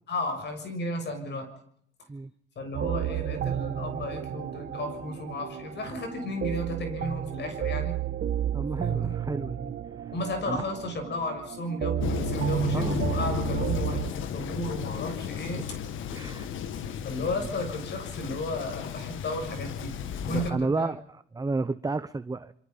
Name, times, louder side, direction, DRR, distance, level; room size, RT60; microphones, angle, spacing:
voice 1, 0.1-1.5 2.6-8.0 8.8-9.2 10.1-15.6 17.0-19.9 20.3-20.9, left 1 dB, 60° left, 7 dB, 6.8 m, -34 dB
sound 1, 2.7-14.1, right 10 dB, 60° right, 1.3 m, -32 dB
voice 2, 8.5-9.7 10.0-10.1 10.5-10.6 12.7-13.1 16.1-16.5 20.3-22.5, right 3 dB, 20° right, 12 dB, 0.8 m, -32 dB
Thunder, 12.0-20.5, left 8 dB, 80° left, 1.7 m, -34 dB
27.5 x 23.5 x 5.5 m, 0.66 s
cardioid pair, 90°, 20 cm